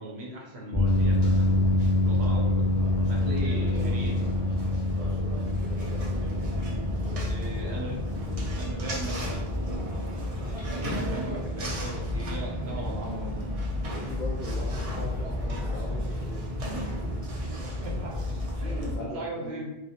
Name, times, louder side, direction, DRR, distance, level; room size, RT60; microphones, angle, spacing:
voice 1, 0.0-1.7 2.0-2.7 3.1-4.2 7.1-8.0 8.6-9.5 10.6-13.5 17.6-18.1 18.6-19.7, right 2 dB, 70° right, -2 dB, 0.8 m, -38 dB
sound 1, 0.7-15.0, left 1 dB, 35° left, 0.3 m, -28 dB
sound 2, 0.8-19.0, left 1 dB, 50° right, 0.4 m, -32 dB
voice 2, 4.9-6.2 7.1-7.2 7.5-7.8 13.8-17.5 18.6-19.6, left 1 dB, 50° left, -5 dB, 0.8 m, -42 dB
2.3 x 2.0 x 2.7 m, 0.94 s
omnidirectional pair, 1.1 m